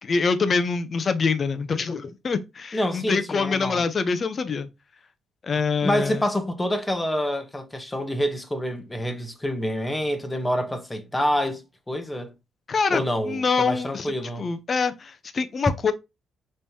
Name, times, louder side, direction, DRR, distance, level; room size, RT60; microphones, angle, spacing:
voice 1, 0.0-4.7 5.4-6.2 12.7-15.9, left 5 dB, 40° left, 0.6 m, -25 dB
voice 2, 2.7-3.8 5.8-12.3 12.9-14.5, equal, 15° left, 0.9 m, -27 dB
5.3 x 3.2 x 2.7 m
cardioid pair, 90°, 0 cm